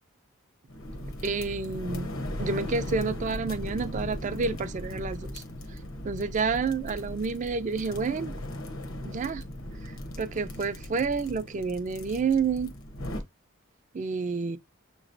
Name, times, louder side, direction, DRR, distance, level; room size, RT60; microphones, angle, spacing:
sound 1, 0.7-13.2, left 1 dB, 80° left, 1.0 m, -38 dB
voice 1, 1.2-2.1 2.4-5.4 6.0-8.3 9.0-9.4 9.8-12.7 13.9-14.6, right 4 dB, 35° right, 0.4 m, -29 dB
6.6 x 3.0 x 2.6 m
head